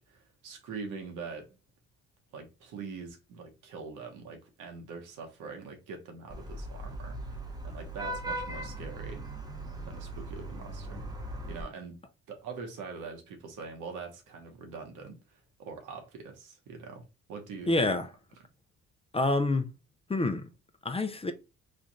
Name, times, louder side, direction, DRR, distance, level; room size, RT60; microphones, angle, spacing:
voice 1, 0.0-1.5 2.3-7.4 7.6-9.3 9.9-11.1 11.5-12.0 12.3-17.9, right 5 dB, 85° right, 1.1 m, -43 dB
Vehicle horn car horn honking / Traffic noise roadway noise, 6.3-11.6, right 1 dB, 15° right, 0.8 m, -39 dB
voice 2, 17.7-18.1 19.1-19.7 20.1-20.5 20.8-21.3, left 2 dB, 20° left, 0.5 m, -27 dB
3.2 x 2.4 x 4.0 m
cardioid pair, 90°, 30 cm